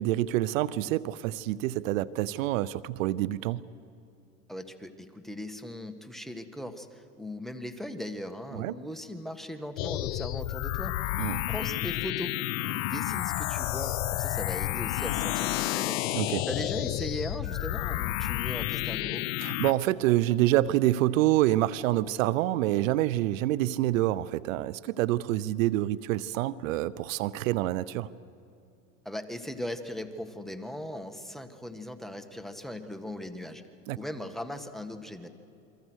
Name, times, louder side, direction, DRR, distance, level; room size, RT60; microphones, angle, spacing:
voice 1, 0.0-3.6 8.5-8.7 11.2-11.4 16.1-16.5 19.4-28.1 33.9-34.0, right 15 dB, 80° right, 0.7 m, -27 dB
voice 2, 4.5-11.0 11.5-16.0 16.5-19.2 29.1-33.6 34.0-35.3, left 1 dB, ahead, 1.7 m, -39 dB
sound 1, 9.8-19.7, left 16 dB, 80° left, 0.7 m, -31 dB
28.5 x 23.5 x 6.4 m
supercardioid pair, 100°, 39 cm